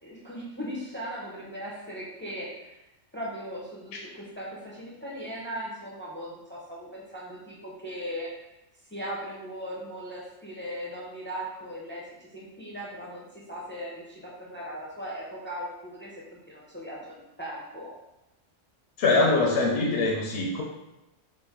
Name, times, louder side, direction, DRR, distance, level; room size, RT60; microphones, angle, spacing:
voice 1, 0.0-2.8 3.1-8.3 8.9-17.9 19.4-19.6, equal, 20° left, -5 dB, 0.3 m, -38 dB
voice 2, 19.0-20.6, left 3 dB, 65° left, -1 dB, 0.7 m, -23 dB
3.1 x 2.4 x 3.6 m, 0.95 s
omnidirectional pair, 1.3 m